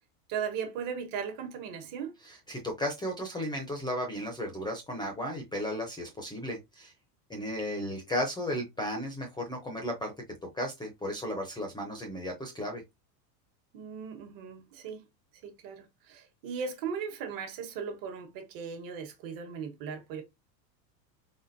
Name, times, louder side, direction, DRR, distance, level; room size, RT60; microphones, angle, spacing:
voice 1, 0.3-2.1 13.7-15.0 15.4-20.2, right 6 dB, 40° right, 1.3 m, -37 dB
voice 2, 2.2-6.9 7.3-10.1 10.4-12.8, equal, 10° left, 0.7 m, -34 dB
4.2 x 3.6 x 2.6 m
supercardioid pair, 135°, 50 cm